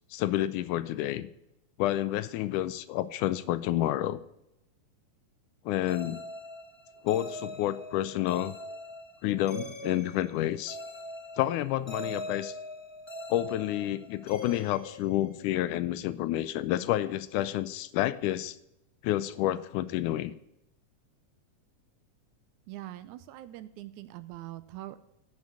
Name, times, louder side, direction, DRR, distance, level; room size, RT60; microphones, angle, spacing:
voice 1, 0.1-1.3 1.8-4.2 5.7-6.2 7.0-8.5 9.2-10.8 11.4-12.5 13.3-18.6 19.0-20.3, left 13 dB, 80° left, 15 dB, 2.0 m, -29 dB
sound 1, 5.9-15.7, left 1 dB, 25° left, 0.6 m, -42 dB
voice 2, 22.7-25.0, right 15 dB, 80° right, 13 dB, 1.9 m, -43 dB
10.5 x 6.5 x 8.4 m, 0.84 s
omnidirectional pair, 3.7 m